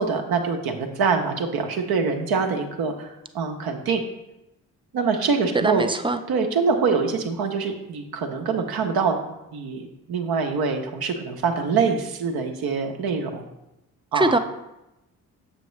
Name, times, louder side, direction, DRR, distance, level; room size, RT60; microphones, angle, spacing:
voice 1, 0.0-4.0 4.9-5.9 6.3-9.2 9.5-13.4 14.1-14.3, right 5 dB, 65° right, 4 dB, 1.0 m, -24 dB
voice 2, 5.5-6.2 14.1-14.4, right 2 dB, 15° right, 8 dB, 0.5 m, -21 dB
6.9 x 6.1 x 3.2 m, 0.92 s
hypercardioid pair, 45°, 39 cm